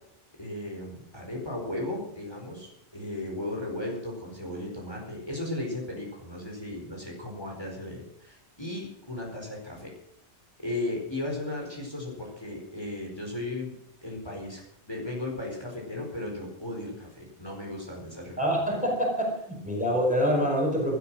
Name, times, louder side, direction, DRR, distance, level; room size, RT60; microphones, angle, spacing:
voice 1, 0.4-9.9 10.6-13.7 14.0-14.6 14.9-18.4, left 1 dB, 20° left, -1 dB, 4.7 m, -36 dB
voice 2, 18.4-21.0, equal, 5° right, -1 dB, 5.0 m, -26 dB
15.5 x 13.0 x 6.2 m, 0.77 s
omnidirectional pair, 1.2 m